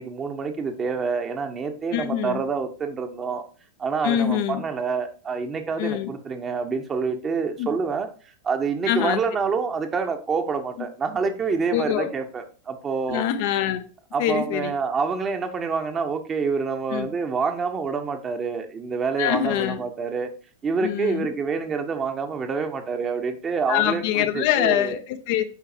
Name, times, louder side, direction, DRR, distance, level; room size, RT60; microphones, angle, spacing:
voice 1, 0.0-3.4 3.8-8.1 8.4-13.2 14.1-20.3 20.6-25.0, right 5 dB, 20° right, 1.1 m, -27 dB
voice 2, 1.9-2.4 4.0-4.6 5.8-6.1 7.6-7.7 8.9-9.2 11.7-12.1 13.1-13.8 14.2-14.7 16.9-17.1 19.2-19.8 20.8-21.3 23.7-25.4, left 11 dB, 50° left, 0.6 m, -24 dB
8.2 x 5.7 x 2.8 m
figure-of-eight pair, 90°, 0 cm